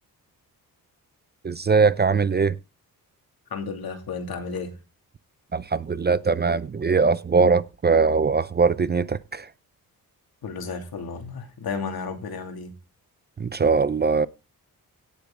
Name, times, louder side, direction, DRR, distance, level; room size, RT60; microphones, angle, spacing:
voice 1, 1.4-2.5 5.5-9.5 13.4-14.3, right 4 dB, 30° right, 0.5 m, -21 dB
voice 2, 3.5-4.7 10.4-12.7, left 5 dB, 75° left, 2.7 m, -33 dB
17.5 x 6.9 x 3.8 m
wide cardioid pair, 110°, 36 cm